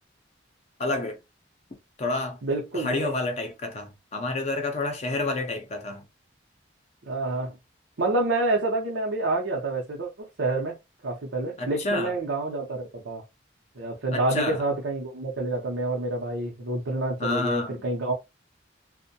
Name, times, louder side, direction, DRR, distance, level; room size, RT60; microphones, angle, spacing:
voice 1, 0.8-1.2 2.0-2.4 2.7-6.0 11.6-12.1 14.1-14.6 17.2-17.8, left 2 dB, 35° left, 0.6 m, -29 dB
voice 2, 2.4-3.1 7.1-7.6 8.0-10.8 11.0-13.2 13.8-18.1, right 2 dB, 75° right, 0.7 m, -28 dB
2.6 x 2.1 x 2.6 m
head